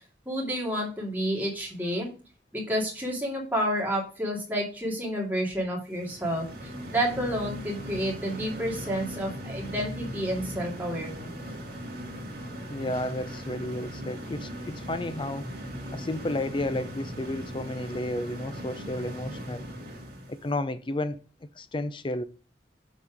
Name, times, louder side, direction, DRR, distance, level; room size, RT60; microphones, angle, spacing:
voice 1, 0.3-2.1 2.5-11.3, equal, 10° right, 2.4 m, -30 dB
sound 1, 5.9-20.4, equal, 55° right, 2.4 m, -39 dB
voice 2, 12.7-15.4 15.9-19.7 20.3-22.2, left 1 dB, 30° left, 0.5 m, -32 dB
7.1 x 4.3 x 5.0 m
head